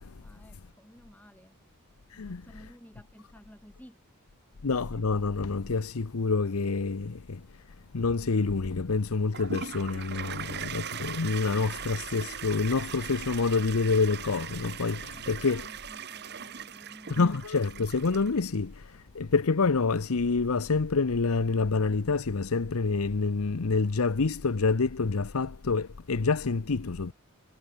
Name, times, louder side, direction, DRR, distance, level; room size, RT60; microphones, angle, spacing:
voice 1, 0.2-1.6 2.1-4.0 15.1-17.4, equal, 5° left, 7.9 m, -53 dB
voice 2, 2.1-2.4 4.6-7.6 7.9-15.6 17.2-27.1, left 4 dB, 80° left, 0.8 m, -27 dB
Toilet flush, 9.3-18.6, right 8 dB, 50° right, 1.1 m, -40 dB
head